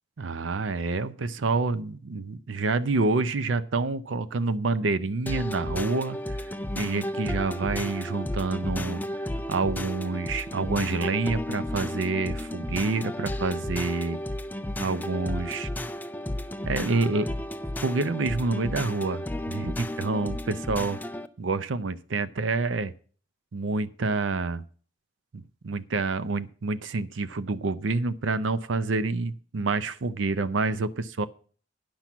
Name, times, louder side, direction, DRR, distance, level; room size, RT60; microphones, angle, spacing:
voice 1, 0.2-9.0 9.5-14.2 14.8-15.7 16.6-17.3 17.8-21.0 21.4-22.9 23.5-24.6 25.3-31.3, right 3 dB, 70° right, 14 dB, 0.6 m, -28 dB
sound 1, 5.3-21.3, left 1 dB, 10° left, 0.4 m, -33 dB
10.5 x 5.9 x 7.2 m, 0.43 s
head